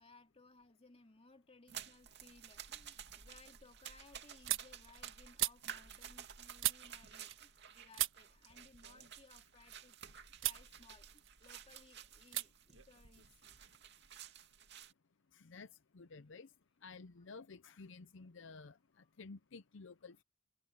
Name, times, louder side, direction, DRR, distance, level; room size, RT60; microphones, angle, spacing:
voice 1, 0.0-13.5 14.0-14.1 16.1-16.5 18.9-19.1 20.0-20.1, left 3 dB, 30° left, 2.8 m, -63 dB
sound 1, 1.7-14.9, right 8 dB, 60° right, 2.6 m, -53 dB
sound 2, 1.7-2.2 2.6-7.7 7.9-10.0 10.4-10.7 11.0-11.8 12.3-12.5 12.7-13.8, right 14 dB, 75° right, 1.4 m, -41 dB
voice 2, 15.3-15.7 15.9-16.5 16.8-18.8 19.2-20.2, left 4 dB, 70° left, 0.6 m, -53 dB
head